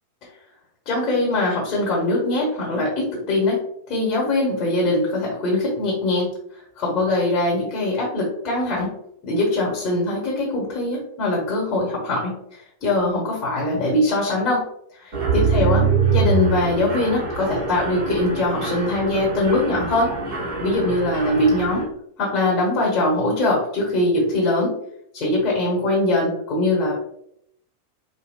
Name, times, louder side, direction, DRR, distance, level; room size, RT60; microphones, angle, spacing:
voice 1, 0.9-3.6 3.9-6.3 6.5-8.9 9.2-14.6 14.9-15.8 16.1-20.1 20.6-21.9 22.2-24.7 25.1-26.9, left 2 dB, 35° left, -3 dB, 1.1 m, -22 dB
Mechanisms, 15.1-21.8, right 5 dB, 40° right, 1.5 m, -24 dB
5.0 x 2.1 x 2.2 m, 0.74 s
figure-of-eight pair, 90°, 0 cm